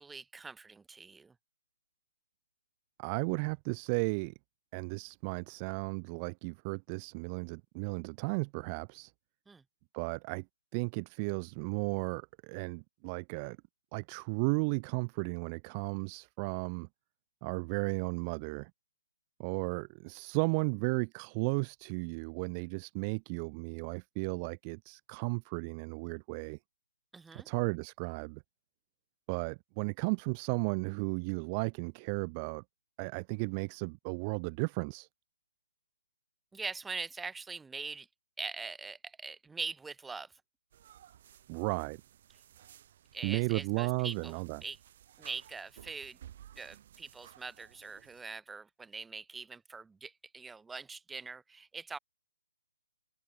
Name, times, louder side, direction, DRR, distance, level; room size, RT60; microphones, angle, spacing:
voice 1, 0.0-1.3 9.5-9.6 27.1-27.5 36.5-38.1 38.4-40.3 43.1-44.8 45.2-46.2 46.6-52.0, right 4 dB, 5° right, 1.9 m, -43 dB
voice 2, 3.0-4.3 4.7-9.1 9.9-10.5 10.7-13.6 13.9-16.9 17.4-18.7 19.4-26.6 27.3-28.4 29.3-32.6 33.0-35.1 41.5-42.0 43.2-44.6, right 34 dB, 20° right, 0.5 m, -34 dB
cm checkout, 40.7-48.2, right 11 dB, 35° right, 6.5 m, -57 dB
hypercardioid pair, 165°, 0 cm